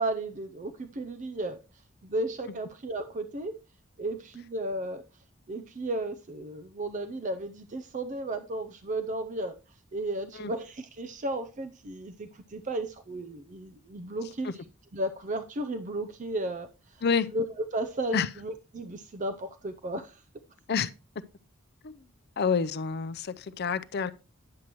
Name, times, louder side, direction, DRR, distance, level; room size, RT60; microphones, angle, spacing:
voice 1, 0.0-1.6 2.0-3.6 4.0-5.0 5.5-9.6 9.9-14.7 14.9-16.7 17.3-20.2, right 1 dB, 40° right, 0.5 m, -34 dB
voice 2, 22.4-24.1, left 6 dB, 50° left, 0.5 m, -27 dB
9.6 x 7.5 x 2.9 m
head